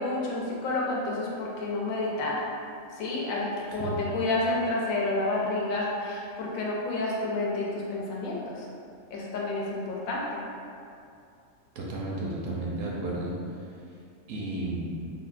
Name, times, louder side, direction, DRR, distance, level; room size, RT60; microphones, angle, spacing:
voice 1, 0.0-2.4 3.0-8.7 9.1-10.4, left 2 dB, 90° left, -4 dB, 1.0 m, -30 dB
voice 2, 3.7-4.0 11.7-13.3 14.3-15.0, right 2 dB, 75° right, -4 dB, 1.0 m, -33 dB
3.6 x 2.2 x 2.4 m, 2.5 s
omnidirectional pair, 1.4 m